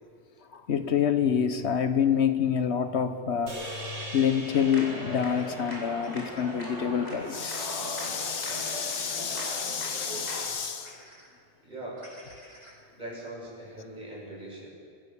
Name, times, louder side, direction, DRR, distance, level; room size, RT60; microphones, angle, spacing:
voice 1, 0.5-11.0, left 8 dB, 75° left, 10 dB, 1.3 m, -28 dB
sound 1, 3.5-7.9, right 1 dB, 85° right, 3.6 m, -42 dB
sound 2, 4.0-4.1 5.3-6.4 8.1-8.5 9.1-9.2 10.0-10.1 10.8-11.3 12.0-12.8, equal, 65° right, 6.6 m, -51 dB
sound 3, 4.5-10.4, equal, 40° left, 4.9 m, -38 dB
voice 2, 11.6-12.0 13.0-14.7, right 1 dB, 40° right, -5 dB, 7.6 m, -41 dB
25.5 x 15.0 x 7.1 m, 2.3 s
omnidirectional pair, 1.1 m